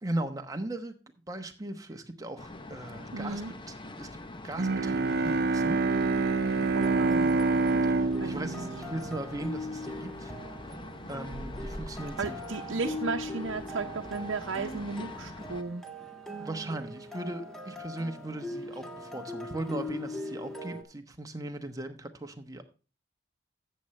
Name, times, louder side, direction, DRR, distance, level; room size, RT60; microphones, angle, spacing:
voice 1, 0.0-0.9 1.3-3.4 3.7-4.2 4.4-5.8 7.9-10.3 11.1-12.4 16.4-22.6, right 1 dB, 20° right, 6 dB, 1.0 m, -38 dB
sound 1, 2.4-15.6, left 1 dB, 25° left, 0.7 m, -44 dB
voice 2, 3.1-3.5 6.7-7.4 8.2-8.7 12.2-15.8, right 4 dB, 85° right, 2 dB, 0.8 m, -34 dB
Bowed string instrument, 4.6-9.8, right 3 dB, 55° right, 0.6 m, -27 dB
sound 2, 6.6-20.8, left 1 dB, ahead, 1.5 m, -41 dB
13.5 x 7.8 x 3.2 m, 0.33 s
head